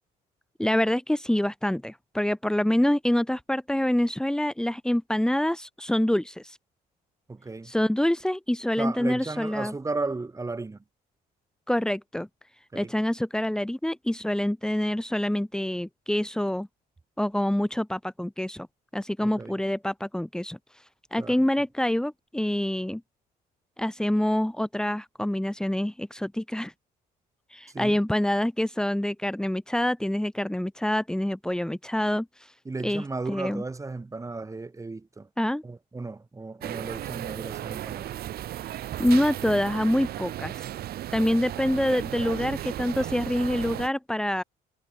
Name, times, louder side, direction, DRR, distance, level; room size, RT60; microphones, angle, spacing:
voice 1, 0.6-6.6 7.6-9.7 11.7-12.3 12.7-16.7 17.2-18.7 18.9-20.6 21.1-23.0 23.8-26.7 27.5-32.5 32.8-33.6 35.4-35.6 39.0-40.7 41.1-44.4, left 1 dB, 5° left, 5.2 m, -26 dB
voice 2, 7.3-7.7 8.8-10.8 12.7-12.9 19.2-19.5 21.1-21.4 27.7-28.0 32.6-35.3 35.6-38.1, right 3 dB, 20° right, 6.5 m, -35 dB
sound 1, 36.6-43.9, right 13 dB, 65° right, 3.7 m, -35 dB
cardioid pair, 110°, 17 cm